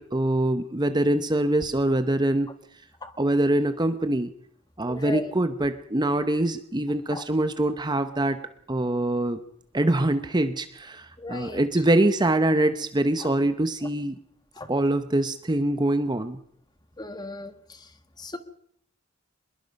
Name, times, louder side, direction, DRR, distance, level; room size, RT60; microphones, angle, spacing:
voice 1, 0.0-2.5 3.2-4.3 4.8-8.4 8.7-9.4 9.7-14.2 14.7-16.4, right 1 dB, 20° right, 10 dB, 0.9 m, -24 dB
voice 2, 4.9-5.3 7.1-7.2 11.2-11.6 13.2-13.3 14.6-14.7 17.0-17.5 18.2-18.4, left 2 dB, 20° left, 9 dB, 1.7 m, -35 dB
24.5 x 21.5 x 5.3 m, 0.67 s
head